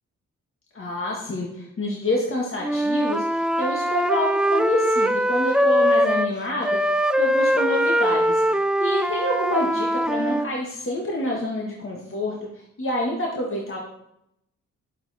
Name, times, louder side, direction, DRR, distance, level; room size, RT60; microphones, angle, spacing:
voice 1, 0.7-6.8 7.2-8.4 8.8-12.4 12.8-13.8, left 1 dB, 40° left, -2 dB, 2.0 m, -27 dB
Wind instrument woodwind instrument, 2.6-6.3 6.6-10.5, equal, 5° right, 0.4 m, -22 dB
9.6 x 7.5 x 4.3 m, 0.78 s
cardioid pair, 65°, 31 cm